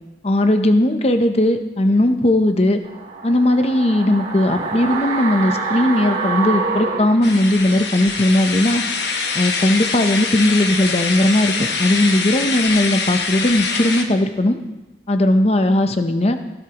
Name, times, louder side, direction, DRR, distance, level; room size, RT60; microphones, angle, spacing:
voice 1, 0.2-2.8 3.2-8.8 9.3-14.6 15.1-16.4, left 1 dB, 35° left, 7 dB, 0.7 m, -17 dB
sound 1, 2.8-8.0 8.3-8.4, right 4 dB, 50° right, 3.1 m, -26 dB
sound 2, 7.2-14.0, left 4 dB, 70° left, 1.1 m, -24 dB
16.5 x 11.5 x 3.0 m, 1.1 s
head